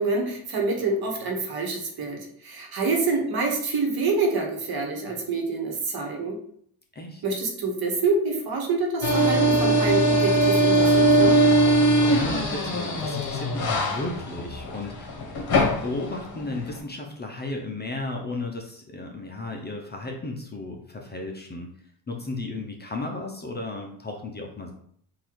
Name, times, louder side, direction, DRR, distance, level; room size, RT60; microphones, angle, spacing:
voice 1, 0.0-6.4 7.2-11.4, right 3 dB, 50° right, 1 dB, 1.3 m, -26 dB
voice 2, 6.9-7.2 12.1-21.7 22.1-24.7, left 2 dB, 20° left, 1 dB, 0.7 m, -34 dB
sound 1, 9.0-16.8, right 1 dB, 50° left, 1.3 m, -21 dB
3.8 x 2.7 x 4.6 m, 0.65 s
cardioid pair, 100°, 47 cm